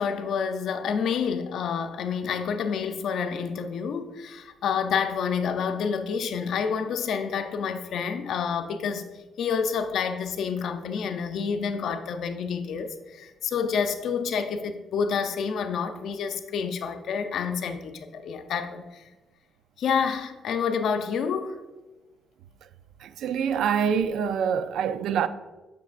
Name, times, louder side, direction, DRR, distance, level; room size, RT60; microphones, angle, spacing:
voice 1, 0.0-9.1 9.4-19.0 19.8-21.6, left 6 dB, 70° left, 0.5 m, -28 dB
voice 2, 23.0-25.3, right 7 dB, 75° right, 0.3 m, -25 dB
7.0 x 6.7 x 2.4 m
cardioid pair, 90°, 0 cm